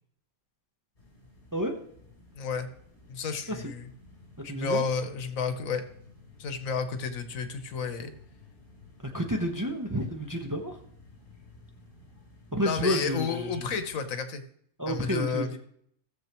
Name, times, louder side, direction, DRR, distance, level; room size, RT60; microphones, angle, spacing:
sound 1, 1.0-14.1, left 3 dB, 40° left, 3.3 m, -54 dB
voice 1, 2.3-2.7 3.1-3.9 4.4-5.8 6.4-8.1 12.6-14.4 14.9-15.5, left 5 dB, 80° left, 8 dB, 1.4 m, -31 dB
voice 2, 4.4-4.8 9.0-10.8 12.5-13.7 14.8-15.5, equal, 15° right, 2 dB, 0.8 m, -30 dB
17.0 x 7.3 x 3.0 m, 0.67 s
omnidirectional pair, 1.4 m